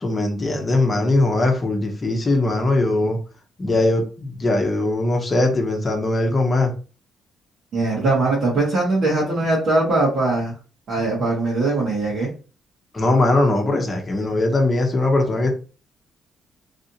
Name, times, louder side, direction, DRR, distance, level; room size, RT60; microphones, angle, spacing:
voice 1, 0.0-3.2 3.6-6.7 12.9-15.5, left 2 dB, 30° left, 2 dB, 0.8 m, -20 dB
voice 2, 7.7-10.5 10.9-12.3, right 2 dB, 65° right, -5 dB, 1.5 m, -21 dB
3.3 x 2.6 x 2.8 m, 0.35 s
cardioid pair, 90°, 0 cm